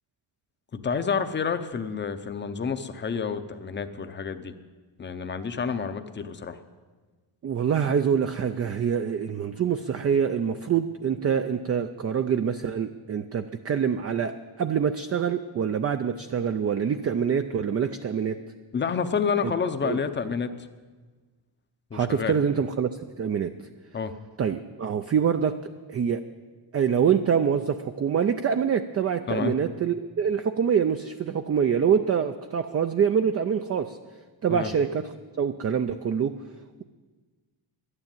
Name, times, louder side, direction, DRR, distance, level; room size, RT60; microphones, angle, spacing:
voice 1, 0.7-4.5 5.0-6.6 18.7-20.5 21.9-22.3 23.9-24.1 29.3-29.5 34.5-34.7, left 6 dB, 25° left, 9 dB, 0.6 m, -29 dB
voice 2, 7.4-18.4 19.8-20.0 21.9-22.9 23.2-23.5 24.4-25.6 25.9-26.2 26.7-34.0 34.4-36.4, right 7 dB, 35° right, 8 dB, 0.4 m, -25 dB
11.5 x 9.8 x 9.0 m, 1.4 s
wide cardioid pair, 160°, 49 cm